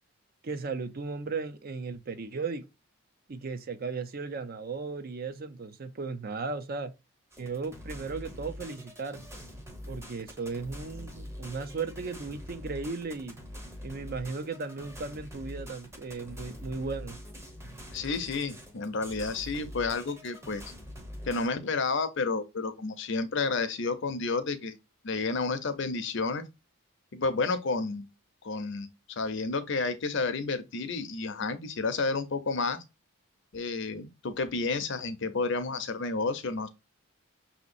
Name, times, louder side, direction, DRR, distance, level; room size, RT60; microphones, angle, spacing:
voice 1, 0.4-2.7 3.3-6.9 7.4-9.2 9.9-13.4 13.8-17.2, right 4 dB, 45° right, 0.5 m, -36 dB
sound 1, 7.3-21.5, equal, 10° right, 0.7 m, -44 dB
voice 2, 17.9-20.6 21.3-24.8 25.0-26.4 27.1-28.0 28.4-32.8 33.5-36.7, left 3 dB, 60° left, 0.6 m, -31 dB
6.0 x 2.8 x 2.5 m
head